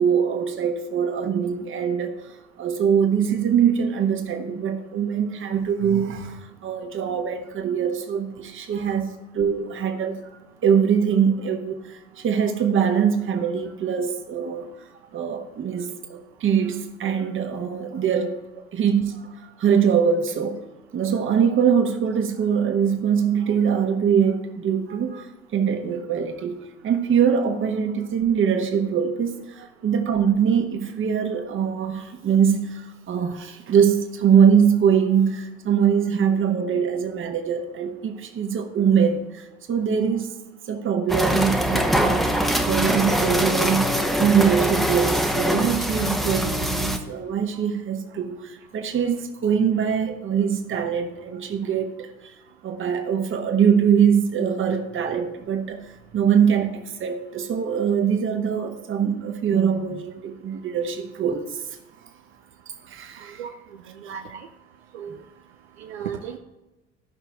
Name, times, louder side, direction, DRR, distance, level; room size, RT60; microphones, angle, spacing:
voice 1, 0.0-2.2 2.6-10.3 10.6-14.7 15.1-18.4 18.7-20.6 20.9-40.4 40.7-52.1 52.6-61.6 62.9-63.4, right 7 dB, 35° right, 1.4 m, -23 dB
sound 1, 41.1-47.0, equal, ahead, 1.1 m, -23 dB
voice 2, 63.2-63.5 64.0-64.5 64.9-65.2 65.8-66.4, right 8 dB, 70° right, 0.7 m, -35 dB
14.0 x 5.8 x 4.6 m
figure-of-eight pair, 60°, 34 cm